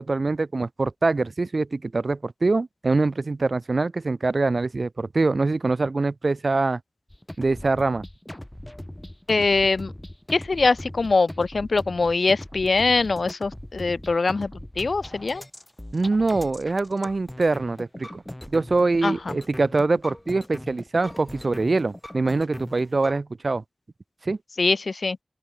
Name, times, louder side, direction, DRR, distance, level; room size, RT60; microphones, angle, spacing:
voice 1, 0.0-6.8 7.4-8.0 15.9-18.2 18.5-23.6 24.2-24.4, right 3 dB, 70° right, 1.1 m, -24 dB
sound 1, 7.1-23.2, left 1 dB, 15° left, 7.8 m, -40 dB
voice 2, 9.3-9.9 10.3-15.4 19.0-19.4 24.6-25.2, left 3 dB, 85° left, 1.2 m, -23 dB
open air
wide cardioid pair, 45°, 0 cm